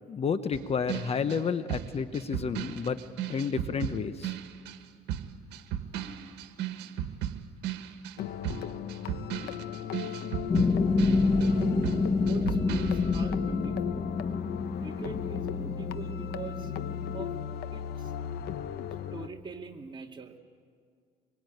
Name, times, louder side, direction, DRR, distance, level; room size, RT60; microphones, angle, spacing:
voice 1, 0.1-3.0 3.3-4.4, left 6 dB, 35° left, 11 dB, 0.9 m, -30 dB
sound 1, 0.5-4.8 5.1-11.6 11.8-13.3, right 10 dB, 85° right, 1.6 m, -36 dB
sound 2, 8.2-19.3, left 9 dB, 75° left, 1.1 m, -37 dB
sound 3, 10.5-17.2, left 3 dB, 20° left, 1.2 m, -28 dB
voice 2, 11.4-11.7 12.2-14.0 14.8-16.7 17.1-17.3 17.7-18.1 19.1-20.4, right 5 dB, 30° right, 2 dB, 2.3 m, -43 dB
24.0 x 23.0 x 9.3 m, 2.1 s
cardioid pair, 110°, 17 cm